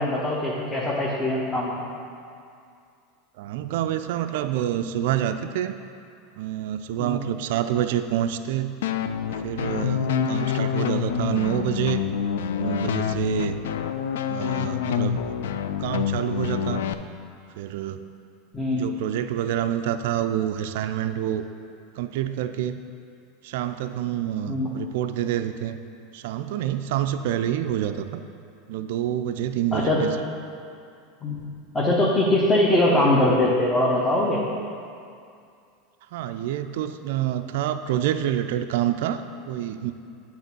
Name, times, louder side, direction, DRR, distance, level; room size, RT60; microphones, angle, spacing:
voice 1, 0.0-1.7 7.0-7.3 9.9-10.3 18.5-18.9 24.5-24.7 29.7-30.0 31.2-31.4 31.7-34.4, left 1 dB, 20° left, -5 dB, 1.1 m, -22 dB
voice 2, 3.4-5.7 6.4-8.8 9.4-12.0 12.6-13.6 14.3-15.2 15.8-16.8 17.6-18.0 18.7-21.4 22.0-22.8 23.4-25.8 26.1-28.2 28.7-30.1 36.1-39.9, right 11 dB, 70° right, 9 dB, 0.3 m, -27 dB
sound 1, 8.8-16.9, left 9 dB, 75° left, 0.3 m, -27 dB
8.7 x 3.6 x 6.0 m, 2.4 s
hypercardioid pair, 95°, 0 cm